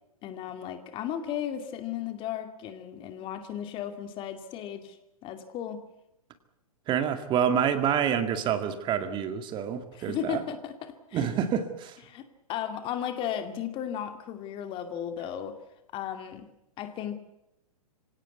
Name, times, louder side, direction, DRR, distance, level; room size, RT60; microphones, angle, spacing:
voice 1, 0.2-5.0 5.2-5.8 9.9-11.3 12.1-12.2 12.5-15.6 15.9-16.5 16.8-17.2, left 9 dB, 25° left, 8 dB, 2.4 m, -35 dB
voice 2, 6.9-10.4 11.1-12.0, right 8 dB, 25° right, 9 dB, 2.0 m, -27 dB
25.5 x 17.5 x 8.3 m, 0.88 s
figure-of-eight pair, 115°, 19 cm